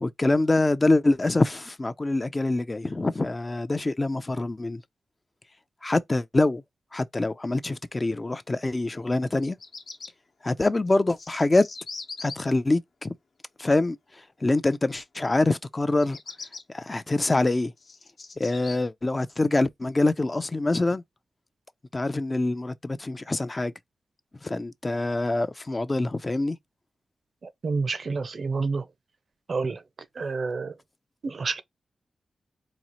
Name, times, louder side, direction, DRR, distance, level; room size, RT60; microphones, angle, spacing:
voice 1, 0.0-4.8 5.8-6.6 6.9-9.6 10.4-11.7 12.2-13.1 13.6-14.0 14.4-16.2 16.7-17.7 18.4-21.0 21.9-23.7 24.4-26.6, left 2 dB, 30° left, 0.4 m, -25 dB
Bird vocalization bird call bird song, 9.3-10.1 10.9-12.3 15.9-16.6 17.3-18.8, left 4 dB, 70° left, 0.9 m, -40 dB
voice 2, 27.4-28.9 29.5-29.8 30.2-30.7 31.2-31.6, right 4 dB, 60° right, 0.5 m, -29 dB
4.0 x 2.4 x 2.9 m
cardioid pair, 75°, 0 cm